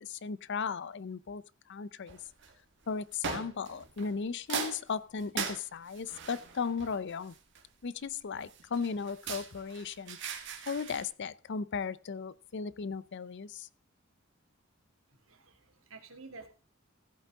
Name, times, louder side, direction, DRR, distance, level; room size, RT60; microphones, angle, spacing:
voice 1, 0.0-1.4 1.7-2.2 2.9-7.3 7.8-10.2 10.7-13.7, left 5 dB, 60° left, 0.6 m, -36 dB
sound 1, 2.1-2.5 3.2-4.2 4.5-7.8 8.5-11.1, right 6 dB, 60° right, 2.0 m, -40 dB
voice 2, 15.1-16.5, right 3 dB, 90° right, 2.5 m, -51 dB
15.5 x 8.3 x 3.6 m
head